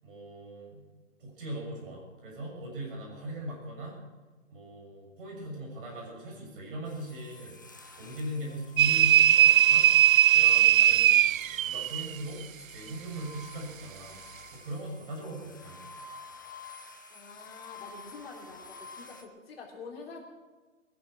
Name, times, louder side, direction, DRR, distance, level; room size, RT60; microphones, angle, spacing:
voice 1, 0.0-0.8 1.2-4.0 4.5-7.5 8.0-9.9 10.3-11.1 11.4-12.4 12.7-14.2 14.5-15.9, right 1 dB, 45° right, -1 dB, 6.9 m, -40 dB
sound 1, 6.8-19.2, left 3 dB, 15° left, 0.5 m, -50 dB
sound 2, 8.8-12.1, right 11 dB, 85° right, 0.5 m, -20 dB
voice 2, 15.2-15.5 16.8-20.2, left 4 dB, 50° left, 0 dB, 3.5 m, -47 dB
21.0 x 11.0 x 6.1 m, 1.3 s
hypercardioid pair, 165°, 39 cm